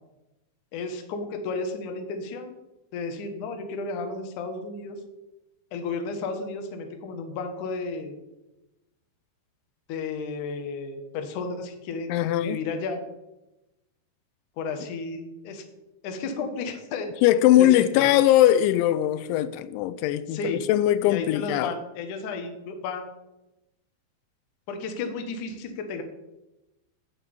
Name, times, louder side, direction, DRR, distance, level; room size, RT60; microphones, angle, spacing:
voice 1, 0.7-2.5 2.9-5.0 5.7-8.2 9.9-13.0 14.6-15.6 16.0-17.1 17.6-18.1 20.3-20.6 21.0-23.1 24.7-26.0, left 4 dB, 60° left, 2.2 m, -33 dB
voice 2, 12.1-12.6 17.2-21.7, left 13 dB, 85° left, 2.9 m, -21 dB
10.5 x 7.1 x 8.7 m
omnidirectional pair, 5.4 m